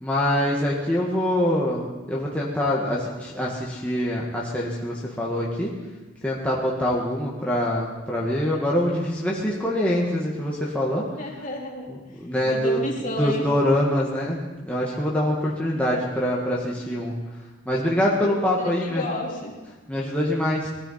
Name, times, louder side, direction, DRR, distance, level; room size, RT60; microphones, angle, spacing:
voice 1, 0.0-5.7 6.2-11.0 11.9-12.8 13.2-14.4 14.6-17.1 17.7-19.0 19.9-20.7, left 1 dB, 5° left, -5 dB, 1.6 m, -24 dB
voice 2, 11.1-11.9 12.4-13.4 15.7-16.1 18.5-19.6, left 1 dB, 40° left, -2 dB, 2.8 m, -32 dB
20.0 x 13.5 x 4.3 m, 1.2 s
head